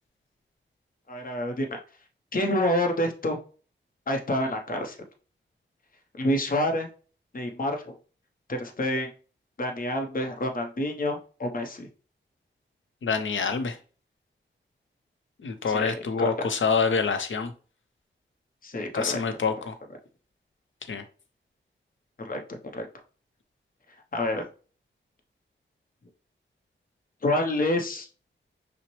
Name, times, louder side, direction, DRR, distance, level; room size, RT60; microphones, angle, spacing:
voice 1, 1.1-1.8 2.3-3.4 4.1-5.0 6.2-6.9 7.3-7.9 8.5-9.1 9.6-11.9 15.7-16.3 18.6-19.2 22.2-22.9 24.1-24.5 27.2-28.1, left 1 dB, 45° left, 0.8 m, -28 dB
voice 2, 13.0-13.8 15.4-17.5 18.9-19.8 20.9-21.0, left 5 dB, 75° left, 0.7 m, -26 dB
5.7 x 2.1 x 3.1 m
wide cardioid pair, 75°, 20 cm